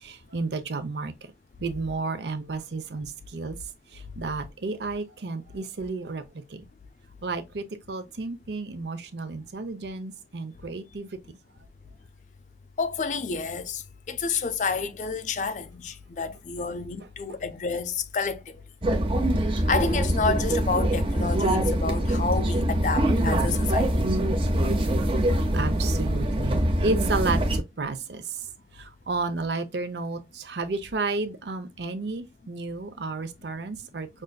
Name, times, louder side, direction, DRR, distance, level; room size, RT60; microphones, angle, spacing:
voice 1, 0.0-1.1 1.6-3.6 3.9-6.2 6.5-6.6 7.2-11.1 24.5-24.7 25.5-28.2 28.7-34.1, right 3 dB, 75° right, 0.6 m, -32 dB
voice 2, 12.8-13.8 14.1-18.6 19.7-23.9, left 4 dB, 40° left, 0.4 m, -29 dB
sound 1, 18.8-27.6, right 1 dB, 30° right, 0.6 m, -24 dB
5.3 x 2.5 x 2.2 m
head